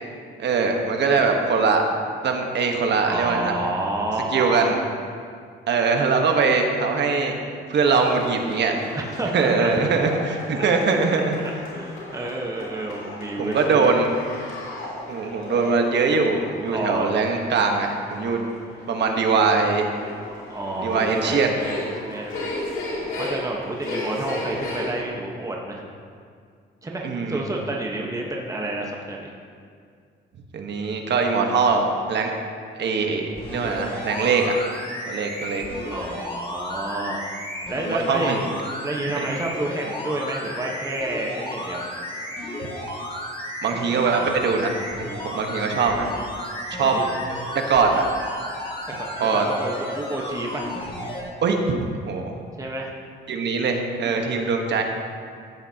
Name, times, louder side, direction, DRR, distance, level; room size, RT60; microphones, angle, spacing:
voice 1, 0.4-1.8 2.2-3.6 4.3-4.8 5.7-7.4 7.7-8.9 9.3-11.4 13.4-14.1 15.1-18.4 18.9-19.9 20.8-21.6 27.0-27.4 30.5-32.3 32.7-34.5 35.1-35.6 37.8-38.4 39.2-39.3 43.6-44.8 45.3-46.1 46.7-46.9 47.7-48.1 49.2-49.5 51.4-51.8 52.1-52.3 53.3-54.8, right 4 dB, 60° right, 3 dB, 1.3 m, -22 dB
voice 2, 3.0-4.7 8.9-9.7 10.5-10.7 11.7-13.9 16.7-17.1 20.5-22.4 23.2-25.8 26.8-29.3 35.6-37.2 37.7-38.4 38.8-41.8 46.8-47.1 49.0-50.7 52.6-52.9, right 2 dB, 15° right, -1 dB, 1.2 m, -29 dB
sound 1, 7.7-25.1, left 2 dB, 80° left, 2.6 m, -35 dB
sound 2, 33.3-51.2 51.8-51.9, equal, 30° left, 2.7 m, -33 dB
14.5 x 8.7 x 2.9 m, 2.2 s
cardioid pair, 90°, 20 cm